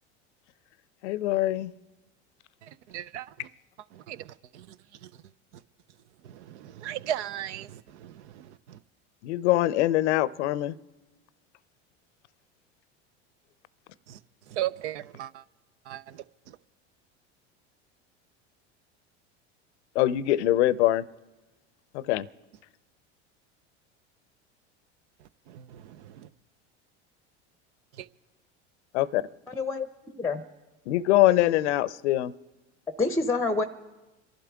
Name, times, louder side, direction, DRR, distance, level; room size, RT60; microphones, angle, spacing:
voice 1, 1.0-1.7 9.2-10.7 20.0-21.0 21.9-22.3 28.9-29.2 30.9-32.3, left 15 dB, 80° left, 0.6 m, -23 dB
voice 2, 2.9-3.5 3.9-4.8 5.0-5.1 6.2-8.8 14.1-14.2 14.5-15.4 15.9-16.6 25.5-26.3 28.0-28.1, right 12 dB, 80° right, 0.6 m, -37 dB
voice 3, 29.5-29.9 30.1-30.4 33.0-33.6, left 3 dB, 10° left, 0.7 m, -27 dB
27.0 x 11.5 x 3.5 m
hypercardioid pair, 90°, 35 cm